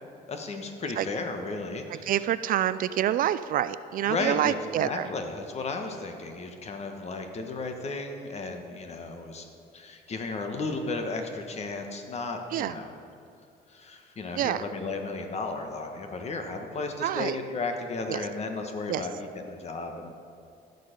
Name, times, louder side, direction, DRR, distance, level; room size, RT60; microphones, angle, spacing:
voice 1, 0.3-2.1 4.0-9.5 9.7-12.9 13.7-20.1, left 3 dB, 40° left, 5 dB, 1.4 m, -34 dB
voice 2, 2.0-5.1 12.5-12.8 14.4-14.6 17.0-17.4 18.1-18.3 18.9-19.1, right 11 dB, 55° right, 15 dB, 0.4 m, -27 dB
14.5 x 6.8 x 5.2 m, 2.4 s
cardioid pair, 110°, 17 cm